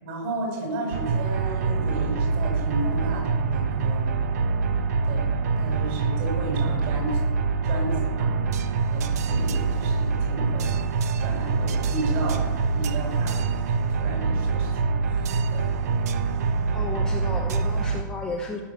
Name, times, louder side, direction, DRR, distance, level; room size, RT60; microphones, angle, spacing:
voice 1, 0.0-4.1 5.0-5.3 5.6-7.2 7.6-8.3 8.9-10.7 11.1-12.4 12.7-13.4 13.7-15.6, right 2 dB, 35° right, -1 dB, 6.1 m, -33 dB
sound 1, 0.9-18.0, right 4 dB, 50° right, 1.0 m, -25 dB
voice 2, 16.7-18.6, left 2 dB, 5° left, -1 dB, 0.8 m, -33 dB
18.5 x 7.8 x 7.5 m, 1.4 s
hypercardioid pair, 175°, 11 cm